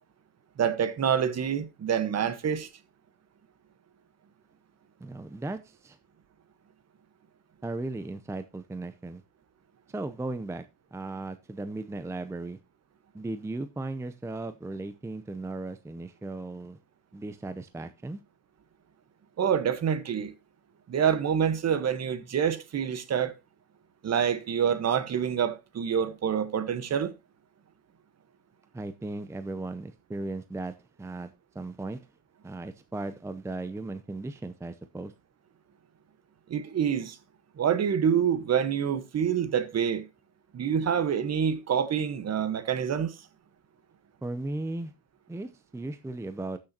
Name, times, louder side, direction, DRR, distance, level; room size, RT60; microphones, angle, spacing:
voice 1, 0.6-2.7 19.4-20.3 20.9-23.3 24.0-27.1 36.5-37.2 37.6-40.1 40.5-43.2, right 8 dB, 45° right, 1.2 m, -27 dB
voice 2, 5.0-6.0 7.6-9.2 9.9-10.6 10.9-12.6 13.1-16.8 17.1-18.2 28.7-32.0 32.4-35.1 44.2-44.9 45.3-46.6, right 2 dB, 5° right, 0.6 m, -36 dB
14.5 x 6.6 x 2.8 m
cardioid pair, 100°, 38 cm